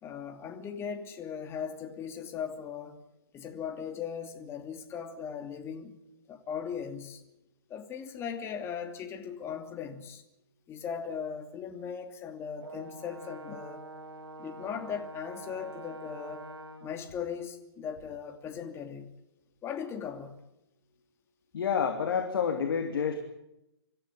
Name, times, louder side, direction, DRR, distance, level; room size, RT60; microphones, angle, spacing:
voice 1, 0.0-3.0 3.3-5.9 6.3-7.2 7.7-10.2 10.7-13.9 14.4-16.5 16.8-19.2 19.6-20.5, left 7 dB, 20° left, 2.8 m, -38 dB
Brass instrument, 12.6-17.0, right 2 dB, 75° right, 2.8 m, -45 dB
voice 2, 21.5-23.2, left 7 dB, 55° left, 3.2 m, -28 dB
25.5 x 15.0 x 10.0 m
figure-of-eight pair, 130°, 14 cm